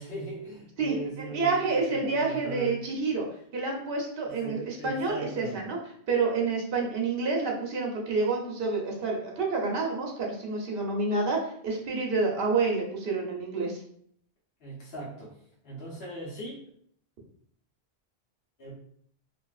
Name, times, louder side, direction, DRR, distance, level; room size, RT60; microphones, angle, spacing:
voice 1, 0.0-2.8 4.2-5.6 14.6-16.6 18.6-18.7, right 2 dB, 65° left, -5 dB, 1.0 m, -39 dB
voice 2, 0.8-3.3 3.5-5.8 6.1-13.8, right 3 dB, 65° right, -1 dB, 0.9 m, -28 dB
3.2 x 2.5 x 2.4 m, 0.64 s
omnidirectional pair, 1.1 m